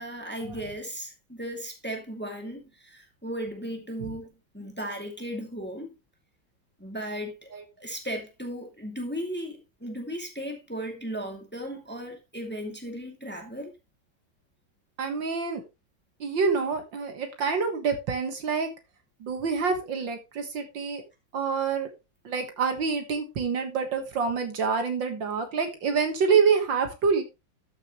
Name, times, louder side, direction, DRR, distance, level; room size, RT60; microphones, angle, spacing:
voice 1, 0.0-6.0 6.8-7.4 7.8-13.7, equal, 5° left, 2.3 m, -36 dB
voice 2, 15.0-15.6 16.2-18.7 19.2-21.0 21.3-21.9 22.3-27.2, right 5 dB, 65° right, 2.2 m, -26 dB
13.0 x 6.4 x 3.1 m
omnidirectional pair, 2.2 m